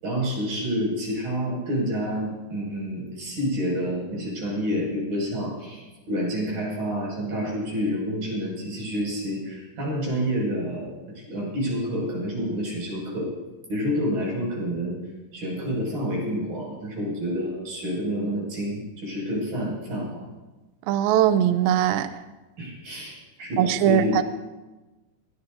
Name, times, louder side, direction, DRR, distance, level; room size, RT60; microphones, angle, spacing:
voice 1, 0.0-13.3 13.7-15.0 15.3-20.2 22.6-24.2, equal, 55° right, -4 dB, 8.1 m, -28 dB
voice 2, 20.9-22.1 23.6-24.2, right 10 dB, 85° right, 10 dB, 2.1 m, -20 dB
22.0 x 19.0 x 2.8 m, 1.2 s
omnidirectional pair, 5.0 m